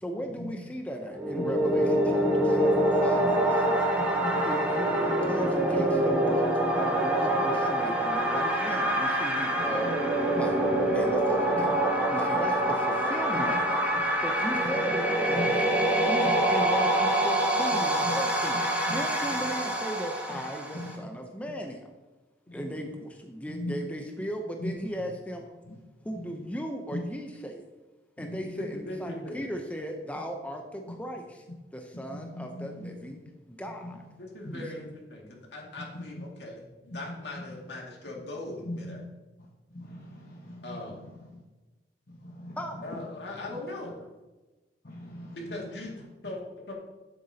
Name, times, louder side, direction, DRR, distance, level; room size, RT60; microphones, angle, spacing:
voice 1, 0.0-4.0 4.4-9.9 10.3-11.7 12.1-13.9 14.2-15.7 16.1-21.9 22.5-25.5 26.0-27.6 28.2-31.4 31.7-34.0 34.5-34.6 42.6-42.8, equal, 10° left, 3 dB, 0.6 m, -37 dB
sound 1, 1.1-21.0, right 1 dB, 10° right, 1.2 m, -25 dB
voice 2, 28.6-29.5 34.2-39.0 40.6-41.0 42.8-44.0 45.3-46.4 46.7-46.8, left 2 dB, 70° left, -1 dB, 2.1 m, -40 dB
voice 3, 32.2-32.9 33.8-33.9 34.5-34.6 38.6-39.0 39.7-40.8 42.3-42.6 44.8-45.4, left 1 dB, 55° left, -2 dB, 1.1 m, -38 dB
9.7 x 7.9 x 2.8 m, 1.1 s
head